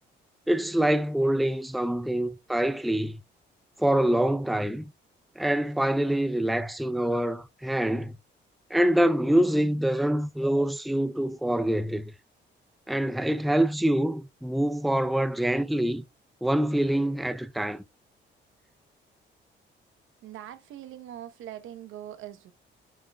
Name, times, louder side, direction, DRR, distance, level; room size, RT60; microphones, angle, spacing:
voice 1, 0.5-3.2 3.8-4.9 5.4-8.1 8.7-12.1 12.9-16.0 16.4-17.8, right 1 dB, ahead, 0.5 m, -25 dB
voice 2, 20.2-22.5, right 11 dB, 80° right, 1.0 m, -42 dB
8.4 x 7.5 x 2.3 m
cardioid pair, 90°, 20 cm